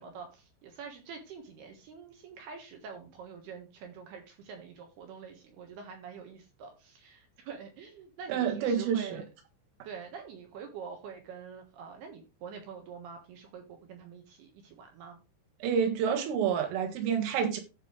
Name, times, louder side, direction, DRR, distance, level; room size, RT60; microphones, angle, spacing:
voice 1, 0.0-9.2 9.8-15.2, right 6 dB, 65° right, 3.0 m, -46 dB
voice 2, 8.3-9.2 15.6-17.6, right 7 dB, 90° right, 4.2 m, -28 dB
14.5 x 5.2 x 3.2 m
omnidirectional pair, 5.7 m